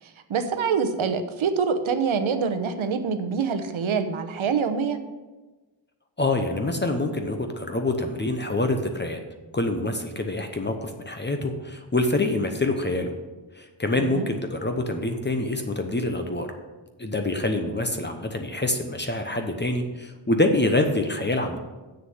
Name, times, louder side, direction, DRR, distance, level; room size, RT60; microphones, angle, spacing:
voice 1, 0.0-5.0 14.0-14.3, right 6 dB, 80° right, 8 dB, 1.1 m, -25 dB
voice 2, 6.2-9.2 9.5-13.1 13.5-16.5 17.0-21.6, left 2 dB, 25° left, 5 dB, 0.8 m, -26 dB
7.6 x 6.7 x 7.9 m, 1.2 s
wide cardioid pair, 150°, 47 cm